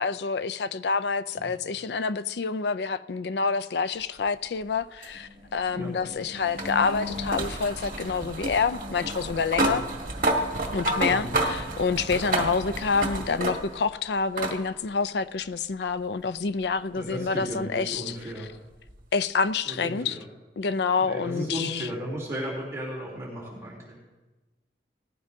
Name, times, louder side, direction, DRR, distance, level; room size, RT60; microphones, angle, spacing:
voice 1, 0.0-9.8 10.7-18.2 19.1-20.2 20.6-21.9, left 5 dB, 70° left, 0.5 m, -27 dB
sound 1, 5.0-13.9 14.4-14.6 15.9-16.0 18.9-19.0, right 1 dB, 50° right, 1.7 m, -30 dB
voice 2, 11.1-11.4 16.9-18.5 19.6-20.3 21.0-24.0, equal, 15° right, 3.1 m, -35 dB
18.0 x 14.5 x 2.7 m
head